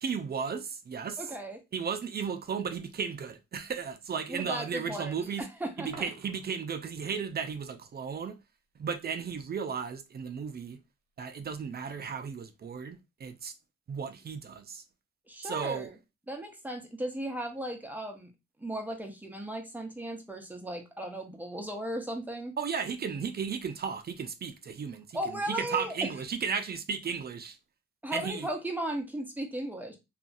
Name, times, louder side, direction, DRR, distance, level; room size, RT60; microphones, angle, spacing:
voice 1, 0.0-1.3 1.7-5.4 5.8-8.4 8.8-10.8 11.2-13.5 13.9-14.8 15.4-15.9 22.6-27.6 28.1-28.5, right 6 dB, 35° right, 0.4 m, -35 dB
voice 2, 1.2-1.6 4.3-5.3 5.6-5.9 15.3-15.9 16.3-18.3 18.6-22.6 25.1-25.9 28.0-30.0, right 1 dB, 5° right, 0.7 m, -36 dB
Coin (dropping), 5.8-6.7 12.8-12.9, right 5 dB, 60° right, 0.8 m, -49 dB
2.7 x 2.4 x 2.5 m
cardioid pair, 90°, 30 cm